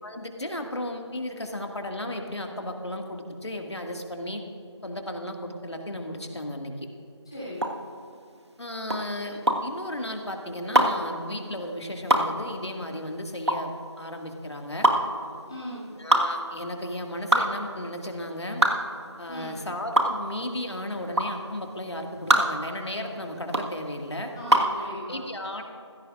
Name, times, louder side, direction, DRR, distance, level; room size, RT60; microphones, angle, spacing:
voice 1, 0.0-4.4 4.8-6.7 8.6-14.9 16.0-18.7 19.2-24.3 25.1-25.6, left 1 dB, 65° left, 2 dB, 2.0 m, -34 dB
voice 2, 7.2-7.7 15.5-15.9 19.3-19.6 24.3-25.2, equal, 10° left, -11 dB, 3.3 m, -38 dB
sound 1, 7.5-24.8, right 1 dB, 65° right, 1.5 m, -25 dB
22.0 x 16.0 x 2.5 m, 2.5 s
figure-of-eight pair, 180°, 15 cm